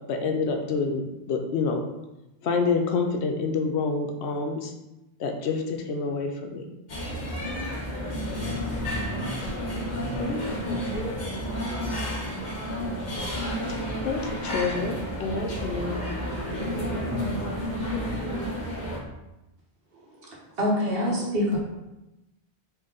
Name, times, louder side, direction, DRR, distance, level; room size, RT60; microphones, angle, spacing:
voice 1, 0.1-1.8 2.4-4.7 5.2-6.6 14.0-16.0, left 4 dB, 85° left, 4 dB, 0.9 m, -27 dB
sound 1, 6.9-19.0, equal, 45° left, 1.0 m, -31 dB
voice 2, 10.2-12.1 17.9-18.7, equal, 10° left, -5 dB, 0.8 m, -37 dB
voice 3, 20.6-21.6, left 1 dB, 60° right, -4 dB, 1.3 m, -24 dB
4.3 x 2.9 x 3.7 m, 0.96 s
omnidirectional pair, 1.1 m